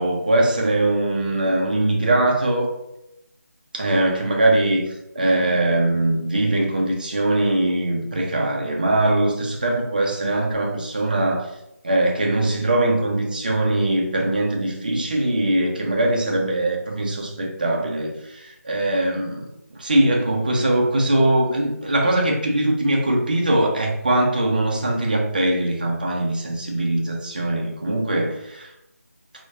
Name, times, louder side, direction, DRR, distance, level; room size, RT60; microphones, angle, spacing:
voice 1, 0.0-2.7 3.7-4.8 5.1-11.5 11.8-28.7, right 1 dB, 30° right, 1 dB, 0.4 m, -21 dB
2.7 x 2.1 x 2.2 m, 0.85 s
figure-of-eight pair, 175°, 9 cm